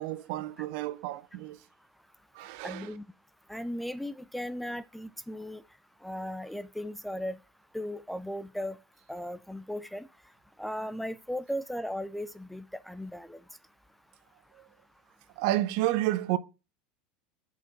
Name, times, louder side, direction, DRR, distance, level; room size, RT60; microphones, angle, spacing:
voice 1, 0.0-1.6 2.3-2.9 14.5-14.6 15.4-16.4, right 15 dB, 70° right, 0.8 m, -30 dB
voice 2, 2.6-3.0 3.5-5.6 6.0-7.4 7.7-8.8 9.1-10.1 10.6-13.4, equal, ahead, 0.4 m, -36 dB
5.9 x 5.1 x 6.6 m
supercardioid pair, 130°, 4 cm